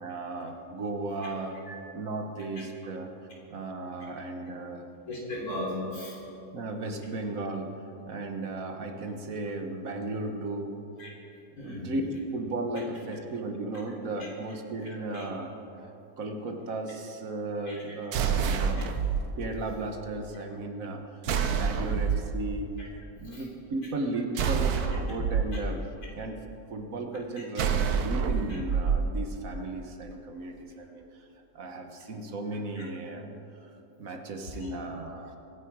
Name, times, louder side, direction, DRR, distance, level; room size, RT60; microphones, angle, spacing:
voice 1, 0.0-1.6 1.9-4.9 6.5-7.7 8.1-10.7 11.6-15.5 15.8-15.9 16.2-18.9 19.3-22.7 23.2-24.8 25.1-25.9 26.1-26.4 26.7-31.3 31.5-33.4 34.0-35.4, right 2 dB, 65° right, 4 dB, 1.6 m, -35 dB
voice 2, 5.1-6.2 11.0-11.1 11.6-11.9 14.2-14.3 14.9-15.3 17.7-18.0 18.7-18.8 22.8-22.9 23.2-23.4 27.4-27.7 28.5-28.6 32.8-32.9 34.6-34.7, left 1 dB, 75° left, -4 dB, 3.9 m, -38 dB
sound 1, 18.1-19.2 21.2-22.3 24.4-25.4 27.6-29.0, right 6 dB, 80° right, 1.3 m, -27 dB
23.0 x 9.7 x 4.7 m, 2.8 s
omnidirectional pair, 1.6 m